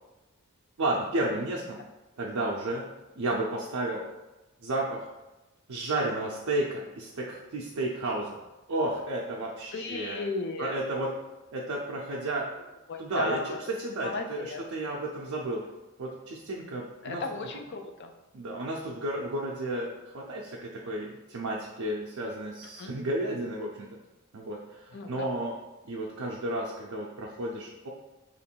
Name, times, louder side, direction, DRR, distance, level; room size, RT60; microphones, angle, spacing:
voice 1, 0.8-1.8 2.2-2.9 3.2-4.0 4.6-5.1 5.7-8.4 8.7-10.3 10.6-11.2 11.5-12.5 13.0-15.7 16.0-17.2 18.3-23.9 24.3-25.6 25.8-27.9, right 1 dB, 85° right, -2 dB, 0.5 m, -32 dB
voice 2, 9.7-10.7 12.9-13.6 14.0-14.6 17.0-18.1 22.8-22.9 24.9-25.3, left 3 dB, 55° left, 5 dB, 0.4 m, -35 dB
3.0 x 2.5 x 4.4 m, 1.0 s
head